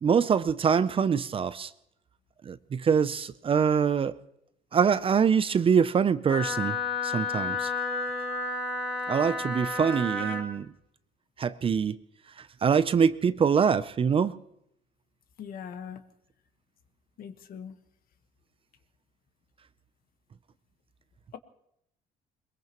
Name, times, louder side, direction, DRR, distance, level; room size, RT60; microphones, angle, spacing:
voice 1, 0.0-1.7 2.5-4.1 4.7-6.8 7.0-7.7 9.1-10.7 11.4-12.0 12.6-14.3, right 6 dB, 30° right, 0.5 m, -24 dB
Wind instrument woodwind instrument, 6.3-10.5, left 3 dB, 5° left, 3.8 m, -31 dB
voice 2, 15.4-16.0 17.2-17.7, left 7 dB, 60° left, 1.4 m, -40 dB
22.0 x 22.0 x 3.0 m
cardioid pair, 110°, 17 cm